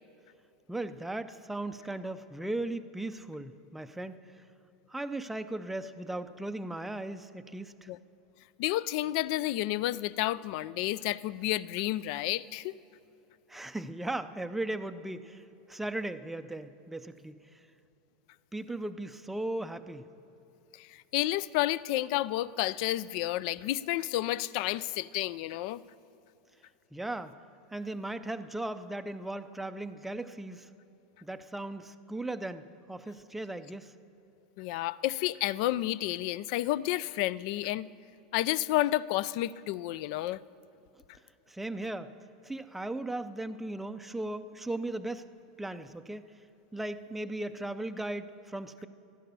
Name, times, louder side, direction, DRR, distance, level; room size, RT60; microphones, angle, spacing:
voice 1, 0.7-4.4 4.9-7.9 13.5-17.4 18.5-20.1 26.9-27.4 27.7-30.7 31.2-33.9 41.5-42.1 42.4-45.3 45.6-46.3 46.7-48.9, right 2 dB, 5° right, 8 dB, 0.5 m, -37 dB
voice 2, 8.6-12.8 20.7-25.8 34.6-37.9 38.3-40.4, left 15 dB, 60° left, 19 dB, 0.4 m, -31 dB
15.0 x 12.0 x 6.9 m, 2.9 s
supercardioid pair, 130°, 4 cm